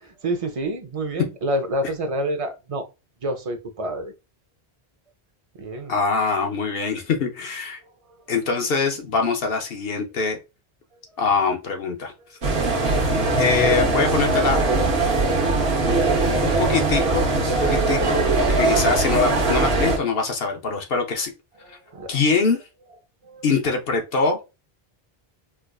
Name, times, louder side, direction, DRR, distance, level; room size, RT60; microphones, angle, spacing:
voice 1, 0.0-2.9 3.2-4.1 5.5-5.9 21.6-22.2 23.2-23.5, right 1 dB, 40° right, 0.6 m, -28 dB
voice 2, 5.9-7.8 8.3-10.4 11.2-12.1 13.4-14.6 16.4-18.3 18.6-21.3 21.7-21.8 22.1-22.6 23.4-24.4, left 4 dB, 70° left, 0.9 m, -23 dB
sound 1, 12.4-20.0, right 2 dB, 70° right, 1.1 m, -20 dB
4.5 x 2.4 x 2.3 m
omnidirectional pair, 1.0 m